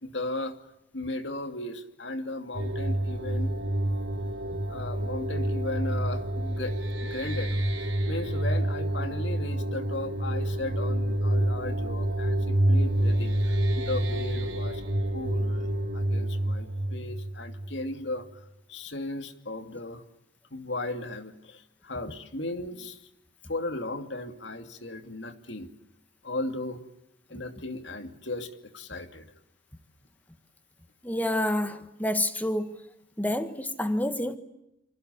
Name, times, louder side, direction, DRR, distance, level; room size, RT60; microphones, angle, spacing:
voice 1, 0.0-0.6 0.9-3.5 4.7-7.7 8.1-14.8 15.1-15.7 15.9-20.0 20.5-23.1 23.5-25.7 26.2-26.9 27.3-29.3, left 2 dB, 65° left, 2.7 m, -36 dB
sound 1, 2.5-18.0, right 1 dB, 70° right, 4.6 m, -28 dB
voice 2, 31.0-32.8 33.2-34.4, left 1 dB, 10° left, 1.7 m, -28 dB
28.5 x 26.5 x 7.1 m
head